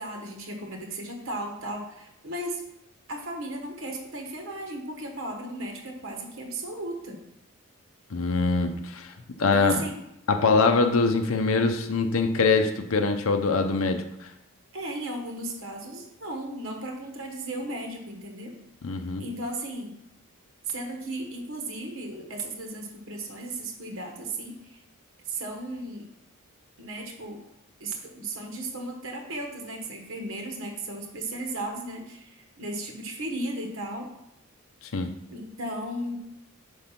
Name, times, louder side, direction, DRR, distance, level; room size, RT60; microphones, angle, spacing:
voice 1, 0.0-2.6 3.1-7.2 9.4-10.0 14.7-18.6 19.2-19.9 20.7-24.8 25.2-26.0 26.8-27.4 27.8-34.1 35.3-36.2, right 1 dB, 65° right, 2 dB, 1.2 m, -35 dB
voice 2, 8.1-9.1 9.4-9.8 10.3-14.3 18.8-19.2 34.8-35.1, left 4 dB, 70° left, 6 dB, 0.6 m, -23 dB
5.3 x 5.2 x 5.8 m, 0.84 s
head